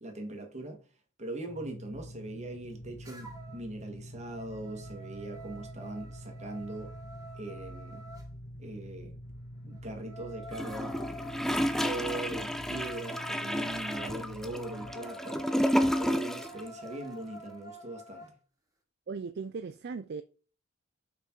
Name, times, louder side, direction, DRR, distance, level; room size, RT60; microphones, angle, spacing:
voice 1, 0.0-0.8 1.2-7.0 7.3-8.0 8.6-9.2 9.6-11.0 11.8-15.4 15.8-18.3, right 2 dB, 35° right, 1.8 m, -41 dB
sound 1, 1.5-14.9, equal, 50° left, 1.5 m, -46 dB
sound 2, 3.0-3.7 4.1-8.3 9.7-18.3, right 1 dB, 15° right, 2.0 m, -48 dB
Gurgling / Toilet flush, 10.5-16.6 16.9-17.0, equal, ahead, 0.5 m, -31 dB
voice 2, 19.1-20.2, right 5 dB, 50° right, 0.4 m, -38 dB
5.9 x 5.7 x 4.5 m
head